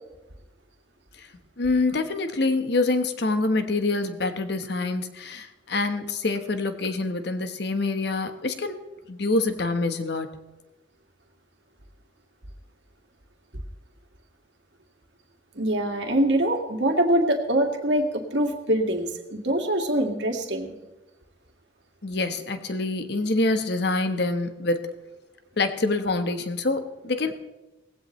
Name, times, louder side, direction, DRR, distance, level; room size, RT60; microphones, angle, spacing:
voice 1, 1.6-8.8 9.1-10.3 22.0-24.9 25.6-27.5, left 2 dB, 60° left, 8 dB, 1.3 m, -26 dB
voice 2, 15.6-20.7, right 1 dB, 70° right, 4 dB, 2.1 m, -24 dB
19.0 x 16.0 x 3.2 m, 1.0 s
head